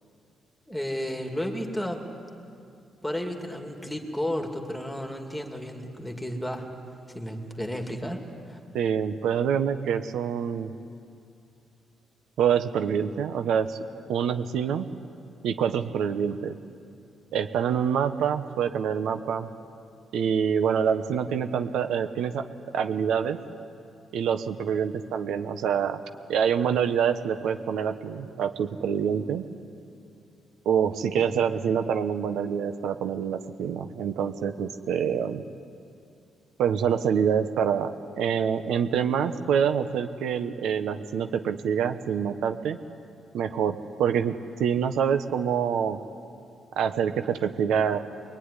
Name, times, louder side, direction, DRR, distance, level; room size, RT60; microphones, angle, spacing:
voice 1, 0.7-2.0 3.0-6.7 7.1-8.6 31.2-31.4, equal, 5° left, 3 dB, 2.3 m, -33 dB
voice 2, 8.7-10.7 12.4-13.8 14.1-14.9 15.4-16.6 17.3-19.5 20.1-22.5 22.7-23.4 24.1-26.0 26.3-29.4 30.6-35.4 36.6-42.8 43.3-46.0 46.8-48.0, right 7 dB, 80° right, 8 dB, 1.1 m, -26 dB
25.0 x 22.0 x 9.9 m, 2.5 s
cardioid pair, 155°, 0 cm